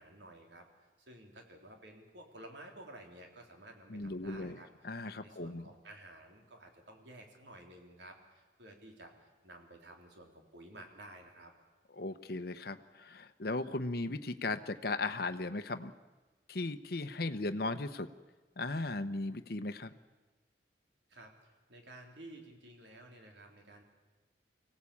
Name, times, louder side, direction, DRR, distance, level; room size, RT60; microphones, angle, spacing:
voice 1, 0.0-4.7 5.2-11.5 21.1-23.8, right 1 dB, 80° right, 3 dB, 3.8 m, -53 dB
voice 2, 3.9-5.6 11.9-15.9 16.5-18.1 18.6-19.9, left 2 dB, 60° left, 9 dB, 0.9 m, -37 dB
25.0 x 17.0 x 8.6 m, 1.2 s
head